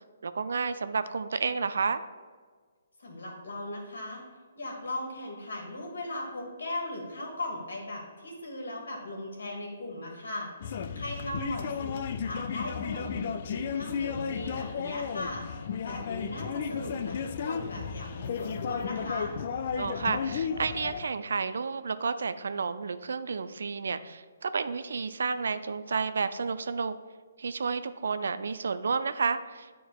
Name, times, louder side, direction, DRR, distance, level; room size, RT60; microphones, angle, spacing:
voice 1, 0.0-2.0 19.8-27.0 27.4-29.7, right 5 dB, 70° right, 12 dB, 0.3 m, -31 dB
voice 2, 3.0-4.2 4.5-15.5 15.8-19.3, left 1 dB, 75° left, -1 dB, 1.7 m, -38 dB
sound 1, 10.6-21.1, left 6 dB, 50° left, 0.4 m, -34 dB
9.1 x 4.5 x 2.3 m, 1.5 s
figure-of-eight pair, 135°, 0 cm